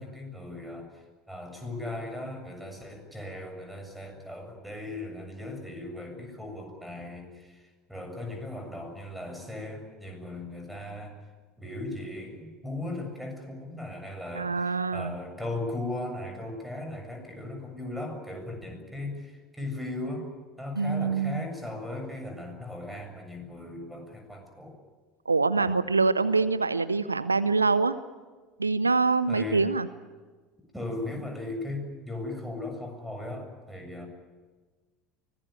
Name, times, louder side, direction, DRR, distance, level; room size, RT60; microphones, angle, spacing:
voice 1, 0.0-11.2 11.6-20.3 20.6-24.8 25.6-25.7 29.3-29.7 30.7-34.1, left 2 dB, 5° right, 5 dB, 7.3 m, -37 dB
voice 2, 14.3-15.2 20.7-21.5 25.3-28.0 28.6-29.9, right 4 dB, 85° right, 15 dB, 0.7 m, -25 dB
24.0 x 19.0 x 9.2 m, 1.4 s
figure-of-eight pair, 70°, 0 cm